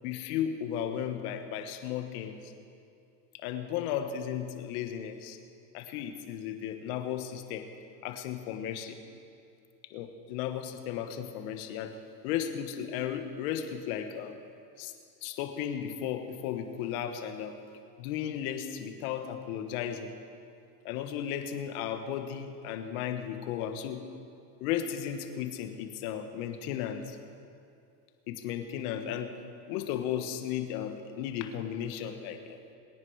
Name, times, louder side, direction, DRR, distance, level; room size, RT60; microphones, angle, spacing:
voice 1, 0.0-2.5 3.4-5.4 5.7-7.7 8.0-9.0 9.9-12.0 12.2-14.3 14.8-14.9 15.2-17.5 18.0-20.1 20.8-24.1 24.6-27.2 28.3-29.3 29.7-32.6, left 9 dB, 60° left, 7 dB, 1.6 m, -35 dB
23.0 x 9.8 x 4.8 m, 2.5 s
supercardioid pair, 120°, 49 cm